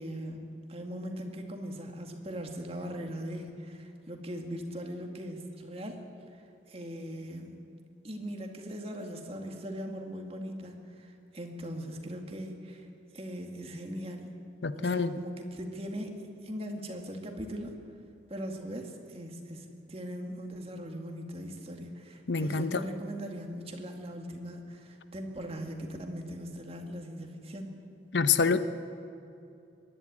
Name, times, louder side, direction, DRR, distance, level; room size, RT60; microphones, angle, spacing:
voice 1, 0.0-6.0 6.3-6.4 6.7-7.5 8.0-12.9 13.1-14.3 14.7-16.2 16.4-17.7 18.3-27.7, equal, 35° right, 3 dB, 2.2 m, -40 dB
voice 2, 14.6-15.1 22.3-22.8 28.1-28.6, left 5 dB, 80° left, 12 dB, 0.8 m, -26 dB
24.0 x 11.0 x 9.8 m, 2.7 s
head